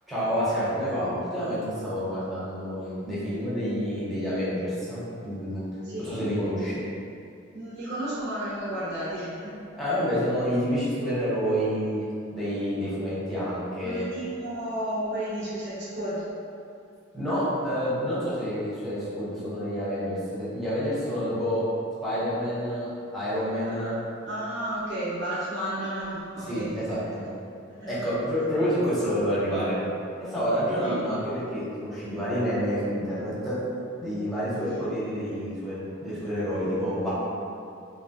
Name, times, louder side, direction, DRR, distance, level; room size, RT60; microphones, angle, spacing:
voice 1, 0.1-5.6 6.0-6.8 9.8-14.1 17.1-21.6 22.0-24.0 26.4-27.3 27.9-29.9 30.2-33.6 34.0-37.1, equal, ahead, -12 dB, 0.9 m, -28 dB
voice 2, 5.8-6.3 7.5-9.6 13.8-16.2 23.7-24.0 24.2-27.2 27.8-27.9 30.7-31.1 34.7-34.9, right 1 dB, 60° right, -10 dB, 0.8 m, -33 dB
3.0 x 2.2 x 2.7 m, 2.5 s
head